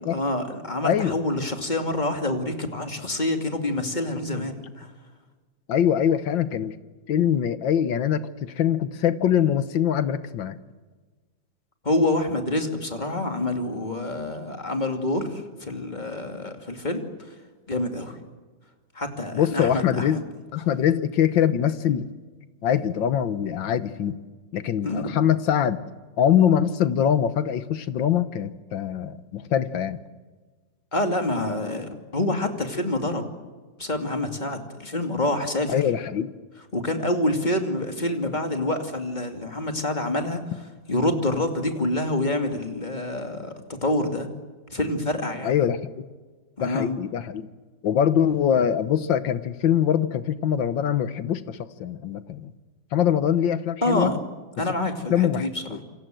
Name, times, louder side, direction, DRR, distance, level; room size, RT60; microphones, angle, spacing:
voice 1, 0.1-4.9 11.8-17.3 17.7-18.2 18.9-20.2 24.8-25.1 30.9-33.2 33.8-35.8 36.7-40.4 40.9-44.3 44.7-45.6 46.6-46.9 53.8-54.2 54.6-55.8, left 1 dB, 20° left, 5 dB, 2.7 m, -27 dB
voice 2, 0.8-1.2 5.7-6.7 7.1-10.6 19.3-20.2 20.5-22.1 22.6-24.2 24.5-25.8 26.2-30.0 35.7-36.3 45.4-45.9 46.6-47.5 47.8-52.5 52.9-54.1 54.8-55.8, left 9 dB, 70° left, 13 dB, 1.8 m, -23 dB
28.0 x 25.0 x 7.8 m, 1.3 s
omnidirectional pair, 2.1 m